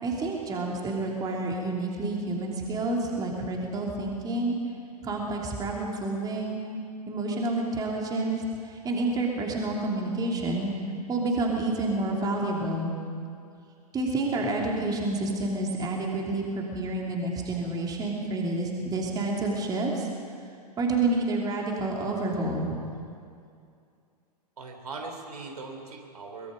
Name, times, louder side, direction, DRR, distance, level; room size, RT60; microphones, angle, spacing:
voice 1, 0.0-4.6 5.0-6.6 7.1-10.8 11.1-12.9 13.9-20.1 20.8-22.8, right 2 dB, 20° right, -1 dB, 3.1 m, -29 dB
voice 2, 24.6-26.5, right 3 dB, 65° right, 3 dB, 3.3 m, -40 dB
23.5 x 21.5 x 5.1 m, 2.4 s
figure-of-eight pair, 100°, 21 cm